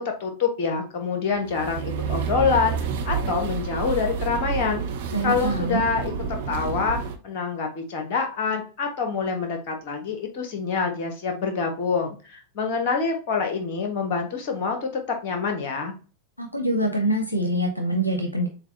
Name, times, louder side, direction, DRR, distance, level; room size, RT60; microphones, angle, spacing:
voice 1, 0.0-2.8 3.0-4.8 5.2-7.0 7.2-15.9, left 5 dB, 45° left, 4 dB, 1.3 m, -26 dB
sound 1, 1.4-7.2, right 6 dB, 55° right, 0.8 m, -29 dB
voice 2, 5.1-5.8 16.4-18.5, right 1 dB, 85° left, 4 dB, 0.7 m, -24 dB
7.3 x 2.4 x 2.7 m, 0.36 s
figure-of-eight pair, 90°, 0 cm